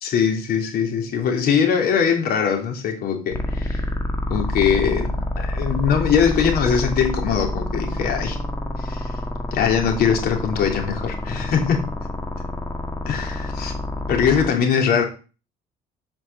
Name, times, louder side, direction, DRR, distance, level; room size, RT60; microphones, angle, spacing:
voice 1, 0.0-3.8 4.3-8.4 8.8-9.2 9.5-11.9 13.0-13.7 14.1-15.0, left 7 dB, 65° left, 3.2 m, -21 dB
sound 1, 3.3-14.5, left 1 dB, 20° left, 1.6 m, -27 dB
8.1 x 5.6 x 7.4 m
cardioid pair, 110°, 17 cm